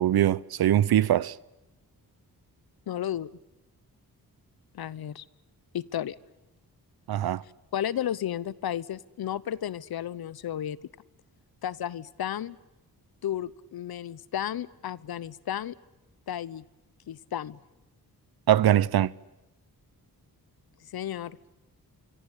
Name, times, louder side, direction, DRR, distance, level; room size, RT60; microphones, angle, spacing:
voice 1, 0.0-1.3 7.1-7.4 18.5-19.1, right 11 dB, 85° right, 0.9 m, -22 dB
voice 2, 2.9-3.3 4.7-5.2 5.7-6.1 7.7-10.8 11.6-12.6 13.2-15.7 16.3-16.6 17.1-17.6 20.9-21.4, left 10 dB, 85° left, 1.0 m, -33 dB
26.0 x 24.5 x 8.4 m
wide cardioid pair, 125°, 36 cm